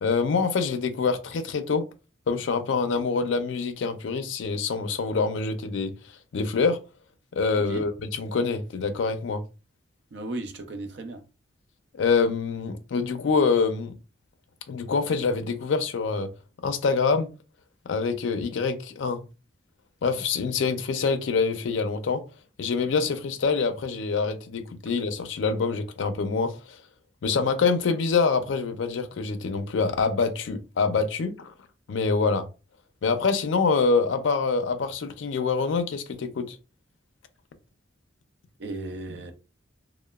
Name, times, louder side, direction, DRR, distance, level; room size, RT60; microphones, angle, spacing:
voice 1, 0.0-1.8 2.3-5.9 6.3-6.8 7.3-9.4 12.0-14.0 14.7-16.3 16.6-17.3 17.9-19.2 20.0-22.2 22.6-26.8 27.2-31.5 31.9-32.4 33.0-36.6, left 4 dB, 75° left, 0.4 m, -25 dB
voice 2, 10.1-11.2 38.6-39.3, right 2 dB, 60° right, 0.5 m, -35 dB
2.9 x 2.0 x 2.2 m
head